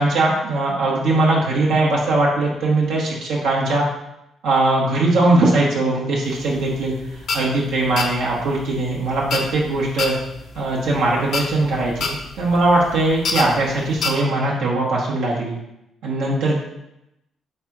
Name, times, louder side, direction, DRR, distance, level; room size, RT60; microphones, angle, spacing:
voice 1, 0.0-3.9 4.4-10.2 10.5-15.5 16.0-16.6, right 2 dB, 85° right, -4 dB, 0.9 m, -20 dB
sound 1, 6.3-14.1, left 4 dB, 65° left, 0.6 m, -28 dB
3.7 x 3.2 x 4.5 m, 0.86 s
cardioid pair, 90°, 0 cm